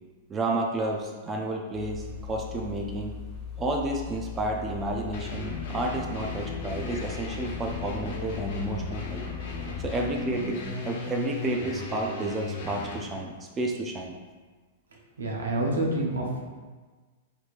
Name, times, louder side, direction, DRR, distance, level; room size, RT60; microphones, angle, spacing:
voice 1, 0.3-3.1 3.6-9.2 9.8-14.1, right 2 dB, 20° right, 1 dB, 0.4 m, -31 dB
sound 1, 1.7-10.1, left 8 dB, 20° left, 0.9 m, -39 dB
sound 2, 5.1-13.1, left 3 dB, 60° left, 0.7 m, -36 dB
voice 2, 15.2-16.4, right 1 dB, 80° right, -1 dB, 0.7 m, -27 dB
4.4 x 2.7 x 2.4 m, 1.4 s
hypercardioid pair, 105°, 0 cm